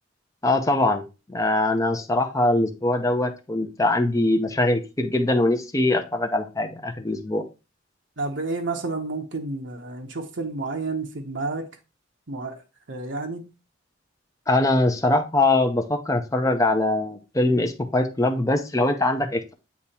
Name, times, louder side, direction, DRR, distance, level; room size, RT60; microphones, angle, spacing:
voice 1, 0.4-1.0 1.3-7.4 14.5-19.5, left 2 dB, 15° left, 0.6 m, -22 dB
voice 2, 8.2-11.7 12.3-12.6 12.9-13.5, right 3 dB, 65° right, 0.9 m, -30 dB
8.3 x 2.9 x 4.2 m
head